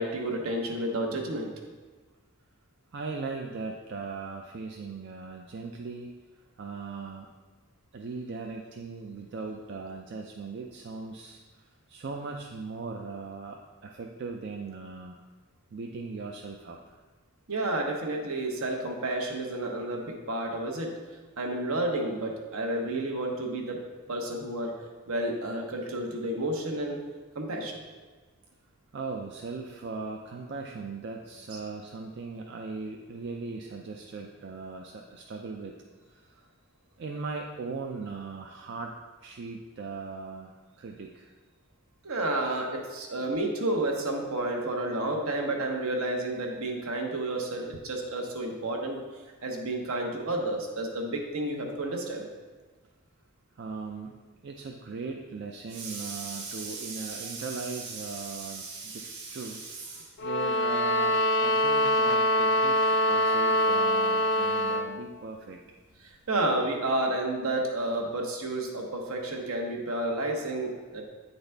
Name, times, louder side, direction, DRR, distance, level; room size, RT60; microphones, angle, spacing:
voice 1, 0.0-1.5 17.5-20.9 21.4-23.8 24.1-24.8 25.1-27.0 27.3-27.8 31.5-31.6 42.0-52.3 66.0-71.0, right 1 dB, 75° right, 1 dB, 1.0 m, -31 dB
voice 2, 2.9-6.2 6.6-7.3 7.9-15.2 15.7-17.0 28.9-35.8 36.1-36.4 37.0-41.3 43.2-43.3 53.6-54.2 54.4-65.6, right 4 dB, 50° right, 1 dB, 0.4 m, -38 dB
sound 1, 60.2-64.9, equal, 50° left, 0.3 m, -24 dB
8.8 x 4.0 x 3.4 m, 1.3 s
head